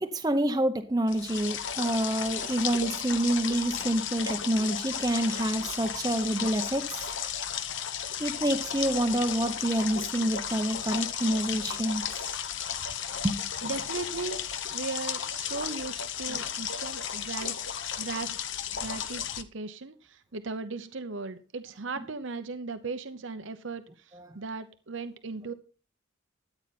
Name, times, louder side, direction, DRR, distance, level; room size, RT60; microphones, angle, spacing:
voice 1, 0.0-7.1 8.2-12.3 13.2-13.4 13.6-13.7 16.3-16.4 24.1-24.3, right 1 dB, 20° right, 0.7 m, -28 dB
sound 1, 1.1-19.4, left 8 dB, 65° left, 0.9 m, -34 dB
voice 2, 13.6-17.6 18.0-18.4 18.7-25.5, right 3 dB, 70° right, 0.9 m, -37 dB
14.0 x 8.9 x 4.2 m
head